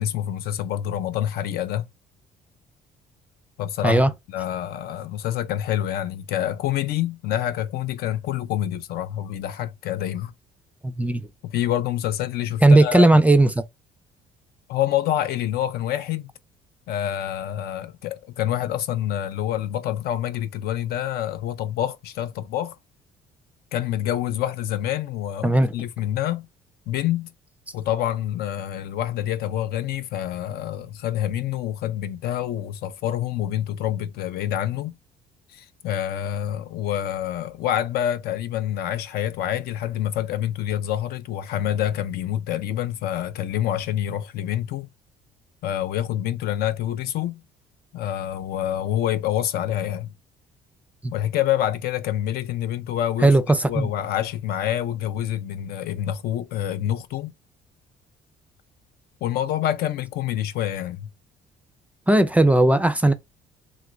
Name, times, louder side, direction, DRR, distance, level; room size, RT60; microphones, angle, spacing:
voice 1, 0.0-1.9 3.6-10.3 11.4-13.2 14.7-16.3 16.9-22.8 23.7-26.5 26.9-27.3 27.7-35.0 35.5-44.9 45.6-47.4 47.9-50.1 51.1-53.3 53.7-57.3 59.2-61.1, left 11 dB, 70° left, 0.4 m, -27 dB
voice 2, 10.8-11.3 12.6-13.5 25.4-25.7 51.0-51.1 53.2-53.9 62.1-63.1, right 2 dB, 10° right, 0.3 m, -17 dB
3.0 x 2.4 x 2.9 m
cardioid pair, 110°, 17 cm